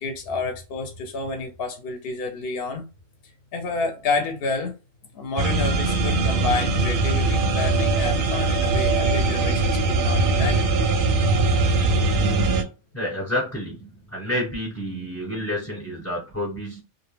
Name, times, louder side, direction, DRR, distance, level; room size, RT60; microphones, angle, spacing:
voice 1, 0.0-2.8 3.5-4.7 5.1-10.7, left 4 dB, 65° left, 0.7 m, -29 dB
sound 1, 5.4-12.6, right 3 dB, 60° right, 0.6 m, -21 dB
voice 2, 12.9-16.8, left 1 dB, 15° left, 0.8 m, -29 dB
2.4 x 2.1 x 3.1 m
omnidirectional pair, 1.2 m